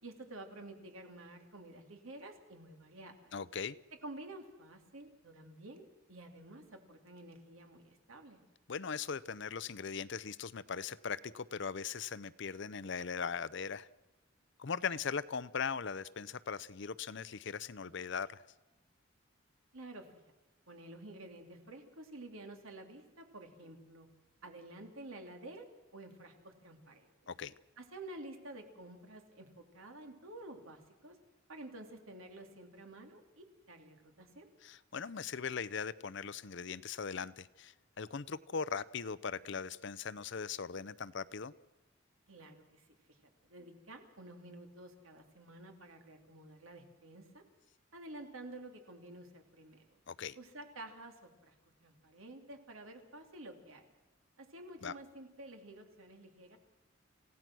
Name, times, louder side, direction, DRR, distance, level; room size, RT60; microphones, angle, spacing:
voice 1, 0.0-3.3 4.0-8.4 19.7-20.1 20.7-24.1 24.4-25.7 25.9-27.1 27.8-31.1 31.5-34.5 42.3-43.2 43.4-47.4 47.9-49.8 50.3-51.5 51.8-53.9 54.4-56.6, right 1 dB, 80° right, 4 dB, 3.1 m, -51 dB
voice 2, 3.3-3.7 8.7-13.9 14.6-18.4 27.3-27.5 34.6-41.5 50.1-50.4 54.8-54.9, left 6 dB, 60° left, 17 dB, 0.6 m, -39 dB
28.0 x 16.5 x 6.2 m, 1.1 s
head